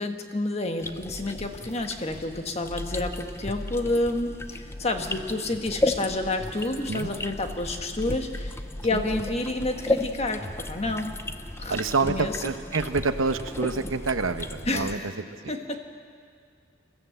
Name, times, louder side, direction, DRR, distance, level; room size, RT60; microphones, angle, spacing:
voice 1, 0.0-11.1 11.6-11.8 12.0-12.4 14.6-15.1 15.5-15.8, left 2 dB, 30° left, 5 dB, 1.4 m, -29 dB
sound 1, 0.8-15.0, left 2 dB, 15° left, 0.6 m, -34 dB
voice 2, 11.7-15.0 15.4-15.5, right 4 dB, 85° right, 9 dB, 1.0 m, -27 dB
22.0 x 15.0 x 7.9 m, 2.1 s
head